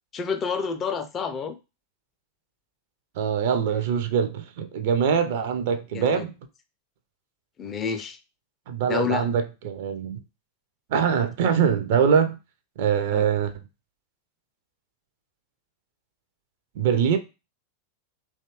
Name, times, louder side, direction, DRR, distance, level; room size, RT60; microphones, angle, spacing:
voice 1, 0.1-1.6 5.9-6.3 7.6-8.2 8.8-9.3 13.1-13.3, left 6 dB, 25° left, 0.4 m, -29 dB
voice 2, 3.2-6.3 8.7-10.2 10.9-12.4 12.8-13.5 16.8-17.2, right 7 dB, 50° right, 0.4 m, -23 dB
2.7 x 2.3 x 2.9 m
figure-of-eight pair, 90°, 0 cm